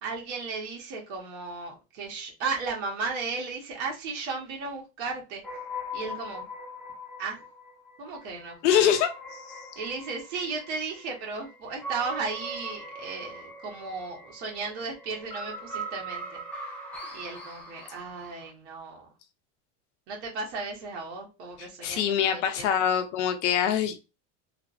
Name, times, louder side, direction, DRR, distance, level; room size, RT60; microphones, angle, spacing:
voice 1, 0.0-5.4 5.9-6.5 7.2-7.4 8.0-8.9 9.8-16.4 17.1-19.1 20.1-22.7, right 4 dB, 75° right, 1.2 m, -35 dB
sound 1, 5.4-18.5, equal, 5° left, 0.5 m, -41 dB
voice 2, 8.6-9.1 21.6-24.0, left 9 dB, 90° left, 0.7 m, -24 dB
3.3 x 2.0 x 2.5 m
supercardioid pair, 155°, 34 cm